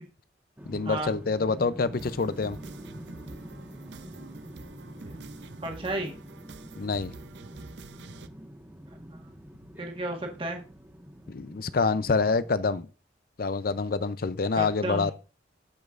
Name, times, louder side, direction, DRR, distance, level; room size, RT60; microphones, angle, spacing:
sound 1, 0.6-12.8, equal, 10° right, 1.3 m, -45 dB
voice 1, 0.7-2.6 6.8-7.1 11.3-12.9 13.4-15.1, left 4 dB, 55° left, 0.5 m, -26 dB
sound 2, 1.9-8.3, right 3 dB, 70° right, 0.6 m, -47 dB
voice 2, 5.6-6.1 9.8-10.6 14.6-15.1, right 1 dB, 30° right, 1.5 m, -33 dB
15.5 x 5.3 x 2.5 m
head